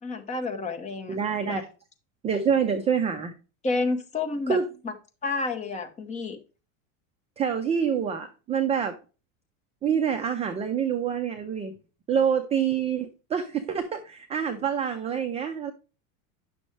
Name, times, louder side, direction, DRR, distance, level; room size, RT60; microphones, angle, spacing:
voice 1, 0.0-1.2 1.4-1.6 3.6-4.6 4.8-4.9 5.2-6.4, left 3 dB, 15° left, 5 dB, 1.1 m, -29 dB
voice 2, 1.1-1.7 2.2-3.3 4.5-4.6 7.4-9.0 9.8-11.8 12.1-15.7, right 7 dB, 15° right, 6 dB, 0.4 m, -26 dB
9.9 x 6.2 x 3.2 m, 0.34 s
supercardioid pair, 150°, 42 cm